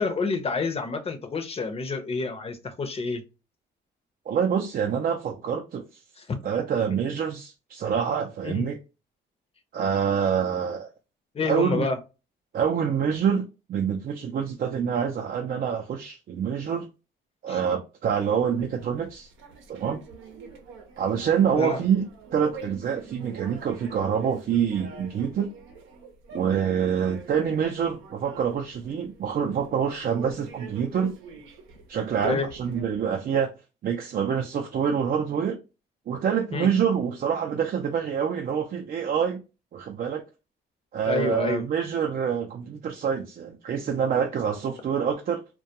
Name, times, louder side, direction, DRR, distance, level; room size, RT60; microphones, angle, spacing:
voice 1, 0.0-3.2 6.2-6.4 8.4-8.7 11.3-12.0 17.5-17.6 21.6-21.8 32.2-32.5 36.5-36.7 41.0-41.7, left 4 dB, 30° left, 0.6 m, -28 dB
voice 2, 4.3-5.9 6.4-8.8 9.7-10.9 11.5-11.9 12.5-16.9 17.4-19.3 19.7-20.0 21.0-25.5 26.3-31.1 31.9-33.5 33.8-35.6 36.1-39.4 39.7-40.2 40.9-45.4, right 7 dB, 50° right, 0.4 m, -26 dB
sound 1, 18.2-32.8, right 5 dB, 85° right, 0.7 m, -46 dB
2.2 x 2.2 x 2.7 m
cardioid pair, 90°, 20 cm